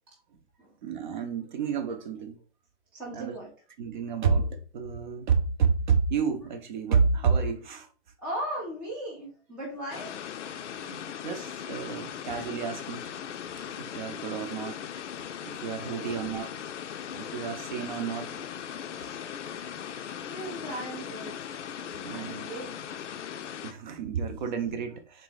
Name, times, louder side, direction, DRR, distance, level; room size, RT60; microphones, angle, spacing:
voice 1, 0.8-2.4 3.1-3.4 3.8-7.9 10.9-13.1 13.8-14.8 15.4-16.5 17.1-18.3 22.0-22.5 23.6-25.2, right 5 dB, 40° right, 0.6 m, -29 dB
voice 2, 2.9-3.5 8.2-10.2 15.9-16.1 16.5-16.6 18.3-18.4 18.9-19.2 19.8-21.4 22.1-22.7, right 1 dB, 5° right, 0.4 m, -38 dB
sound 1, 9.9-23.7, left 9 dB, 80° left, 0.5 m, -39 dB
3.7 x 2.7 x 3.8 m
hypercardioid pair, 140°, 35 cm